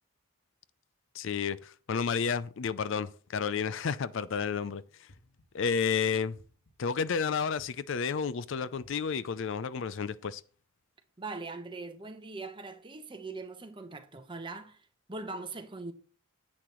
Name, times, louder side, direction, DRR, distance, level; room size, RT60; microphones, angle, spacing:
voice 1, 1.1-5.1 5.5-6.4 6.8-10.4, left 6 dB, 60° left, 0.4 m, -31 dB
sound 1, 5.1-5.7 6.3-7.0 7.6-8.2 8.8-9.5, left 1 dB, 85° left, 1.9 m, -61 dB
voice 2, 11.2-15.9, right 3 dB, 20° right, 1.0 m, -41 dB
9.9 x 8.5 x 3.1 m
head